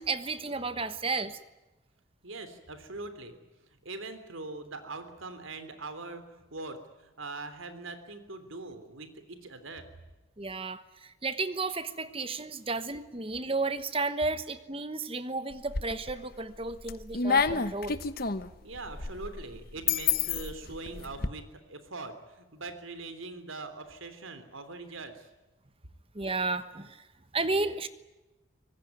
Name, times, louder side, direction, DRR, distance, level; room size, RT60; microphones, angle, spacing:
voice 1, 0.0-1.4 10.4-18.0 26.1-27.0 27.3-27.9, right 3 dB, 25° right, 12 dB, 1.2 m, -33 dB
voice 2, 2.2-3.4 3.7-9.9 18.6-25.3, right 3 dB, 75° right, 10 dB, 3.4 m, -42 dB
sound 1, 15.5-16.2 16.6-21.3, left 5 dB, 45° left, 1.1 m, -30 dB
25.0 x 19.5 x 9.5 m, 1.1 s
head